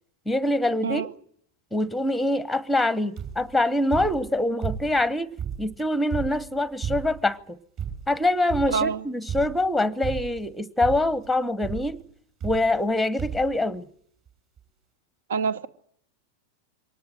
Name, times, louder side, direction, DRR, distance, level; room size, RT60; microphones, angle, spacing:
voice 1, 0.3-1.1 1.7-7.6 8.1-12.0 12.4-13.9, left 1 dB, ahead, 0.9 m, -24 dB
sound 1, 3.2-3.5 3.9-5.1 5.4-7.3 7.8-8.2 8.5-8.9 9.3-9.7 10.0-10.5 10.8-11.2 11.6-11.9 12.4-12.9 13.2-13.6 14.3-14.4 14.6-14.7, right 8 dB, 40° right, 6.0 m, -34 dB
voice 2, 8.7-9.0 15.3-15.7, right 6 dB, 65° right, 1.0 m, -26 dB
23.0 x 19.0 x 9.0 m
figure-of-eight pair, 90°, 0 cm